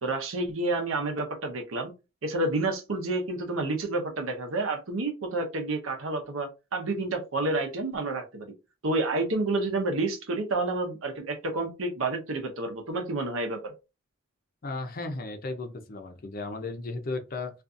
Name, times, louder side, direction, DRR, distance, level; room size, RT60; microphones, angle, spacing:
voice 1, 0.0-1.9 2.2-8.5 8.8-13.7, right 2 dB, 80° right, 0.7 m, -29 dB
voice 2, 14.6-17.5, left 3 dB, 45° left, 0.5 m, -35 dB
2.5 x 2.4 x 2.5 m
head